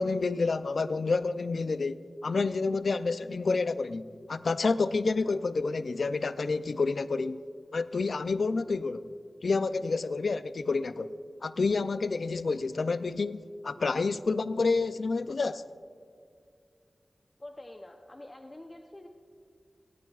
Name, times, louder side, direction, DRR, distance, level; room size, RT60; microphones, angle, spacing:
voice 1, 0.0-7.4 7.7-9.1 9.4-11.1 11.4-15.6, left 4 dB, 75° left, 0.4 m, -29 dB
voice 2, 17.4-19.1, left 1 dB, 30° left, 0.7 m, -46 dB
29.0 x 11.5 x 2.4 m
wide cardioid pair, 75°, 0 cm